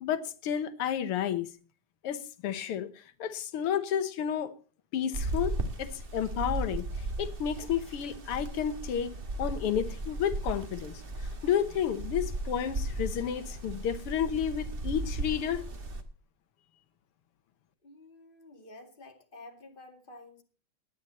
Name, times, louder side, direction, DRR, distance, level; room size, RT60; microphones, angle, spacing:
voice 1, 0.0-1.5 2.0-4.5 4.9-15.6, left 9 dB, 90° left, 2.0 m, -31 dB
sound 1, 5.1-16.0, right 2 dB, 30° right, 1.5 m, -36 dB
voice 2, 17.8-20.4, left 2 dB, 25° left, 2.3 m, -51 dB
20.5 x 9.5 x 4.2 m
omnidirectional pair, 2.4 m